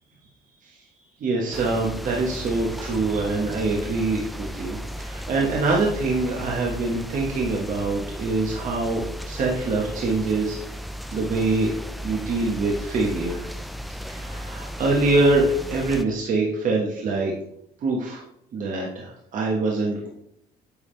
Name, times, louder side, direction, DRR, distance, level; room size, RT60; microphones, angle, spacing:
voice 1, 1.2-10.6 11.1-11.7 12.0-13.5 14.1-17.3 17.8-18.2 18.5-20.1, right 3 dB, 50° right, -2 dB, 1.4 m, -24 dB
sound 1, 1.5-16.0, equal, ahead, 0.4 m, -35 dB
9.5 x 3.6 x 3.3 m, 0.73 s
cardioid pair, 110°, 17 cm